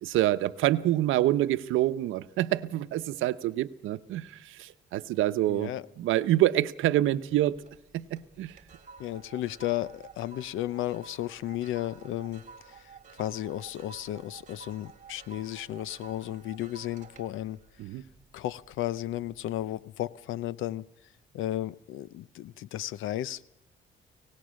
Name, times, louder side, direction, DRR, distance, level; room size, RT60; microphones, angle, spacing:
voice 1, 0.0-5.7 6.0-7.6 7.9-8.5 17.8-18.0, right 14 dB, 90° right, 12 dB, 0.9 m, -26 dB
voice 2, 5.5-5.8 9.0-12.9 13.2-17.6 18.3-20.9 21.3-23.4, left 13 dB, 85° left, 20 dB, 0.7 m, -34 dB
sound 1, 7.3-7.8 8.2-18.7 19.2-19.5, right 5 dB, 40° right, 2.0 m, -51 dB
24.0 x 18.5 x 6.4 m, 0.79 s
cardioid pair, 90°, 20 cm